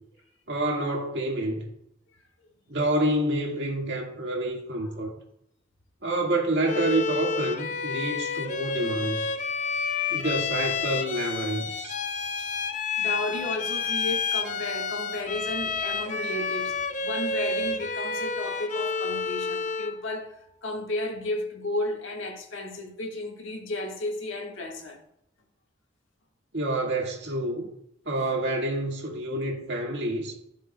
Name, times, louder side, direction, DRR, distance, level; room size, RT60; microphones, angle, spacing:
voice 1, 0.5-1.7 2.7-5.1 6.0-9.3 10.1-12.0 26.5-27.7 28.1-30.3, right 1 dB, 65° right, 1.8 m, -28 dB
Bowed string instrument, 6.7-20.0, left 5 dB, 40° left, 0.5 m, -30 dB
voice 2, 12.9-20.4 20.6-25.0, left 2 dB, 90° left, 1.5 m, -33 dB
14.5 x 6.6 x 2.2 m
head